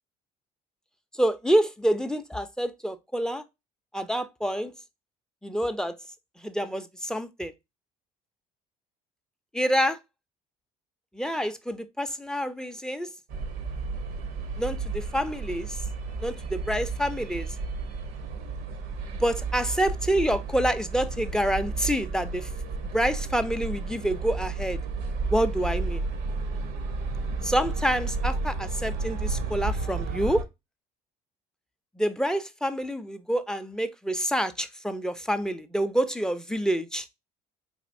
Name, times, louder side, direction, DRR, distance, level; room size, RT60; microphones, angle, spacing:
voice 1, 1.2-3.4 3.9-4.7 5.4-5.9 6.4-7.5 9.5-10.0 11.1-13.1 14.6-15.8 16.2-17.5 19.2-22.5 22.9-24.8 25.3-26.0 27.4-30.4 32.0-37.1, equal, 5° left, 0.5 m, -27 dB
sound 1, 13.3-30.4, right 4 dB, 70° right, 0.8 m, -32 dB
4.2 x 2.8 x 2.5 m
supercardioid pair, 75°, 17 cm